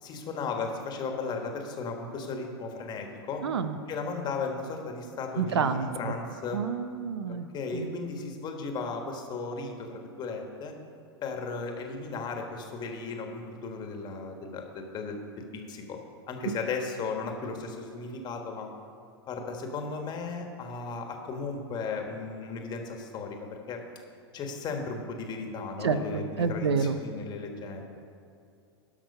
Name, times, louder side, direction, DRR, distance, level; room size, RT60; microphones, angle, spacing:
voice 1, 0.0-3.4 3.9-6.6 7.3-10.7 11.2-16.0 16.3-18.7 19.3-23.8 24.3-28.0, left 4 dB, 30° left, 3 dB, 1.4 m, -36 dB
voice 2, 3.4-3.8 5.4-6.1 6.5-7.5 7.7-7.9 16.4-16.5 25.8-27.0, right 5 dB, 80° right, 11 dB, 0.6 m, -29 dB
11.0 x 6.0 x 5.5 m, 2.5 s
hypercardioid pair, 105°, 13 cm